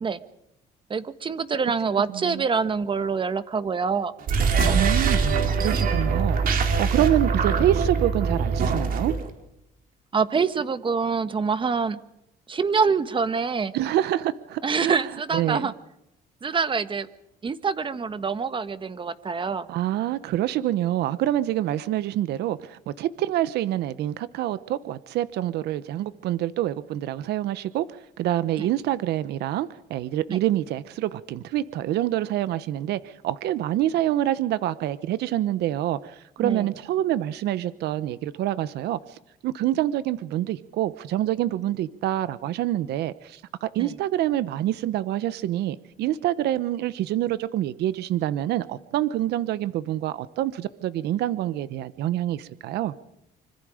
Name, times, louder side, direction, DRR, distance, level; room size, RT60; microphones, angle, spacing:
voice 1, 0.9-4.1 7.0-7.1 10.1-12.0 12.5-13.7 14.6-15.7 16.4-17.1 17.4-19.7 28.6-28.7 30.3-30.4 36.4-36.7 43.8-43.9, right 5 dB, 30° right, 12 dB, 1.5 m, -25 dB
voice 2, 2.1-2.4 4.7-9.1 13.7-15.7 19.7-39.2 39.4-52.9, right 13 dB, 75° right, 15 dB, 1.0 m, -26 dB
sound 1, 4.2-9.3, right 5 dB, 55° right, 4.2 m, -23 dB
25.5 x 25.0 x 5.1 m, 0.82 s
cardioid pair, 110°, 17 cm